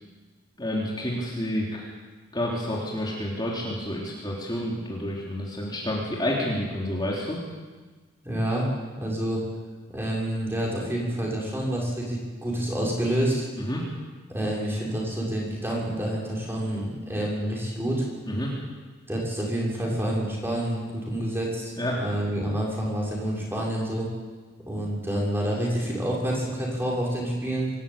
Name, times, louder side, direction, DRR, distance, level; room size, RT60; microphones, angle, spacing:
voice 1, 0.6-1.8 2.3-7.4 13.6-13.8 18.3-18.5 21.8-22.0, left 1 dB, 20° left, -4 dB, 3.5 m, -29 dB
voice 2, 8.2-8.7 9.0-9.4 9.9-13.4 14.3-18.1 19.1-24.1 24.7-27.7, right 1 dB, 10° right, -4 dB, 6.5 m, -28 dB
25.5 x 14.0 x 9.0 m, 1.4 s
head